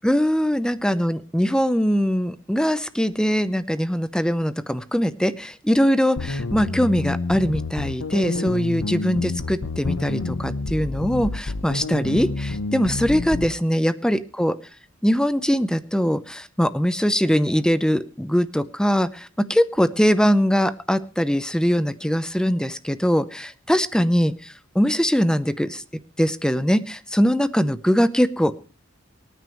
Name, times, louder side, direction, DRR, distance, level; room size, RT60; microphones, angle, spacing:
voice 1, 0.0-14.6 15.0-25.8 26.2-28.5, equal, 5° left, 13 dB, 0.7 m, -22 dB
sound 1, 6.2-13.5, left 3 dB, 85° left, 0.9 m, -28 dB
24.5 x 9.3 x 3.1 m, 0.35 s
head